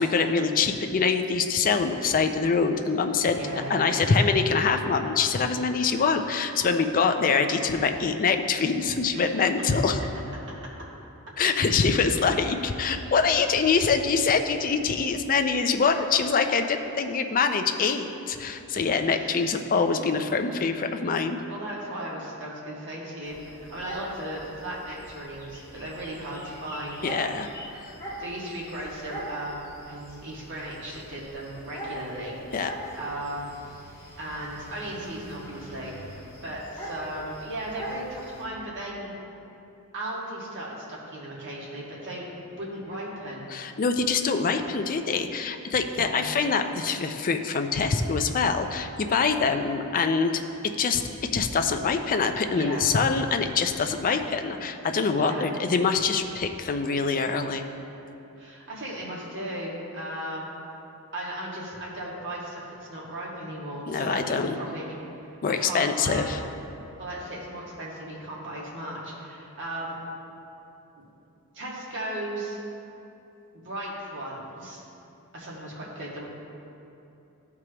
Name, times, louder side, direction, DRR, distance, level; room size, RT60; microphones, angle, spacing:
voice 1, 0.0-3.4 3.7-10.0 11.4-21.4 27.0-27.9 32.5-32.7 43.5-51.0 51.3-57.6 63.9-64.6 65.4-66.4, left 5 dB, 40° left, 6 dB, 0.4 m, -24 dB
voice 2, 3.3-4.2 9.1-9.5 13.1-13.2 19.1-19.3 21.5-27.0 28.2-32.4 33.0-33.8 34.2-39.2 39.9-43.4 45.9-46.3 52.5-52.8 55.1-55.5 58.4-60.5 61.1-65.0 65.6-66.3 67.0-70.0 71.5-72.6 73.5-74.8 75.3-76.3, right 1 dB, 55° right, -5 dB, 1.8 m, -36 dB
sound 1, 23.2-38.4, right 1 dB, 15° left, 1.4 m, -42 dB
14.0 x 4.7 x 2.9 m, 2.8 s
head